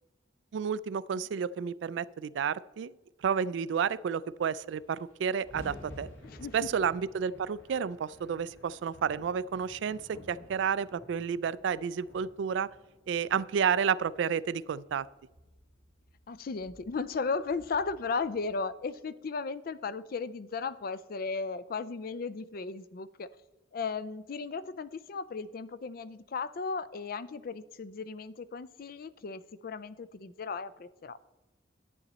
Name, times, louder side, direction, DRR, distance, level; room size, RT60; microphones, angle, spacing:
voice 1, 0.5-2.9 3.2-6.1 6.5-12.7 13.1-15.1, right 7 dB, 65° right, 18 dB, 0.3 m, -31 dB
sound 1, 4.3-4.4 4.6-18.9, equal, 85° left, 2.1 m, -53 dB
voice 2, 6.2-6.7 16.3-23.3 23.7-31.2, left 4 dB, 50° left, 15 dB, 0.4 m, -36 dB
11.0 x 8.6 x 4.0 m, 1.1 s
head